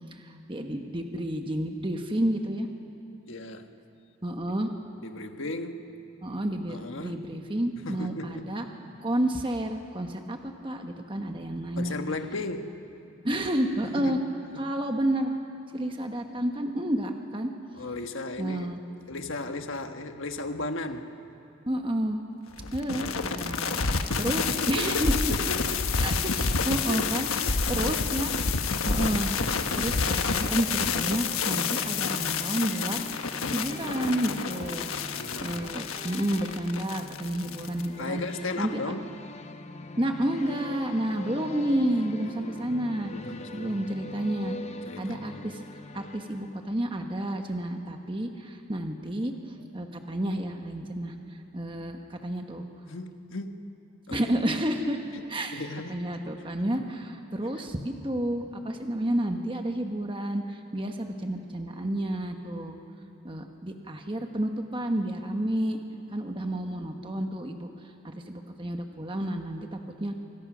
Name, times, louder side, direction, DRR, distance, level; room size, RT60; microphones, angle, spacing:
voice 1, 0.1-2.7 4.2-4.7 6.2-8.7 9.0-12.0 13.2-14.2 14.6-15.3 15.7-17.5 18.4-18.8 21.7-22.2 22.7-25.1 26.0-28.6 28.8-29.3 29.7-33.0 33.5-34.9 35.4-38.2 38.6-38.9 40.0-43.1 43.5-44.5 45.0-45.6 45.9-52.6 54.1-55.0 55.3-55.6 55.9-62.8 63.2-65.8 66.1-67.7 68.0-70.1, right 1 dB, 25° right, 4 dB, 1.2 m, -30 dB
voice 2, 3.3-3.7 5.0-5.8 6.7-7.2 7.8-8.6 11.8-12.7 13.8-14.2 14.5-14.6 17.7-18.8 19.1-21.1 24.1-26.0 26.9-27.1 27.4-28.1 34.8-35.8 38.0-39.1 42.2-42.7 43.1-43.9 44.8-45.4 52.9-53.6 54.1-54.4 55.1-55.2 55.5-56.0 56.7-56.8, left 2 dB, 70° left, 6 dB, 1.5 m, -36 dB
sound 1, 22.6-37.9, left 5 dB, 85° left, 1.3 m, -29 dB
sound 2, 29.2-46.9, left 2 dB, 30° left, 0.9 m, -43 dB
26.0 x 26.0 x 6.2 m, 3.0 s
head